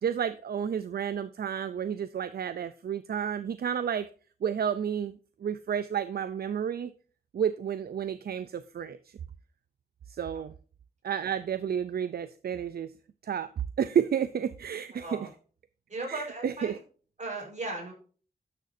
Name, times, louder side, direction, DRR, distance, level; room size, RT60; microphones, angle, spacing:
voice 1, 0.0-4.1 4.4-6.9 7.3-9.1 10.1-10.5 11.0-12.9 13.2-13.5 13.8-15.1 16.1-16.8, right 8 dB, 75° right, 13 dB, 0.5 m, -31 dB
voice 2, 14.9-15.3 15.9-16.8 17.2-17.9, right 2 dB, 45° right, 0 dB, 4.4 m, -37 dB
11.5 x 6.6 x 2.7 m, 0.40 s
wide cardioid pair, 95°, 16 cm